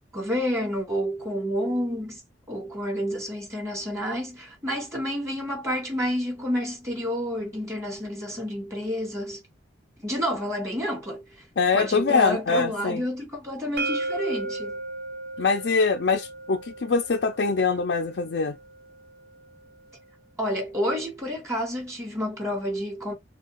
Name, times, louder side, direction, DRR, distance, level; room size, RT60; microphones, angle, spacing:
voice 1, 0.1-2.2 2.5-9.4 10.0-11.4 11.7-14.8 20.4-23.1, equal, 15° right, 2.8 m, -29 dB
voice 2, 11.6-13.0 15.4-18.6, left 4 dB, 70° left, 0.5 m, -23 dB
sound 1, 13.8-19.6, right 2 dB, 60° right, 0.7 m, -36 dB
6.2 x 2.3 x 2.5 m
head